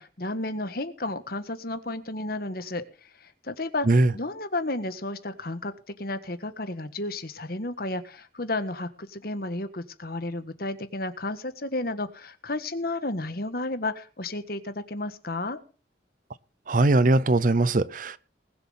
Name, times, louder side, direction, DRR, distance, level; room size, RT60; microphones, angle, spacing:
voice 1, 0.0-15.6, left 2 dB, 55° left, 1.6 m, -32 dB
voice 2, 16.7-18.2, right 2 dB, 45° right, 0.6 m, -20 dB
20.0 x 7.1 x 5.7 m
head